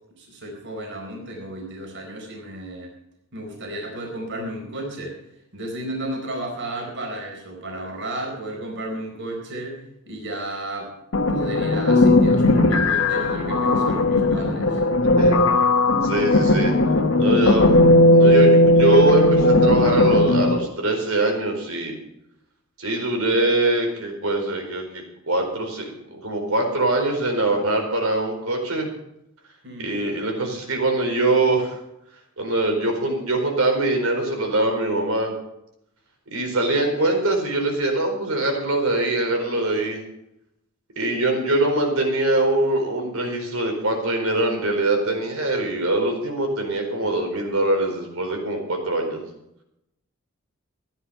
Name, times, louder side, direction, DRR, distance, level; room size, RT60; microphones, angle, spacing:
voice 1, 0.2-2.9 3.3-5.2 5.5-9.8 10.1-10.9 11.3-14.8 29.6-29.9, right 1 dB, 60° right, 0 dB, 4.4 m, -33 dB
sound 1, 11.1-20.7, left 1 dB, 65° left, 1.3 m, -17 dB
voice 2, 16.0-16.8 17.2-17.8 18.1-22.0 22.8-28.9 29.8-31.7 32.4-35.3 36.3-40.0 41.0-49.2, right 2 dB, 75° right, 2 dB, 4.5 m, -23 dB
15.0 x 11.0 x 5.6 m, 0.81 s
head